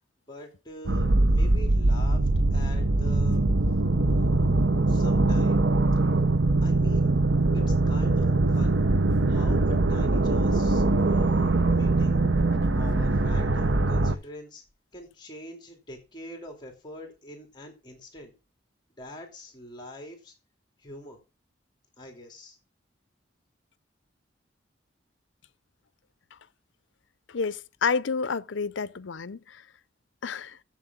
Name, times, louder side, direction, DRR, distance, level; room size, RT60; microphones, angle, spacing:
voice 1, 0.3-3.4 4.0-4.6 4.9-5.6 6.6-7.1 7.5-8.8 9.1-12.2 12.7-14.6 14.9-18.3 19.0-20.3 20.8-21.2 22.0-22.6, equal, 25° left, 2.6 m, -44 dB
sound 1, 0.9-14.2, right 2 dB, 75° right, 0.8 m, -22 dB
voice 2, 27.3-29.6 30.2-30.6, left 5 dB, 80° left, 0.6 m, -29 dB
7.7 x 7.4 x 8.1 m
head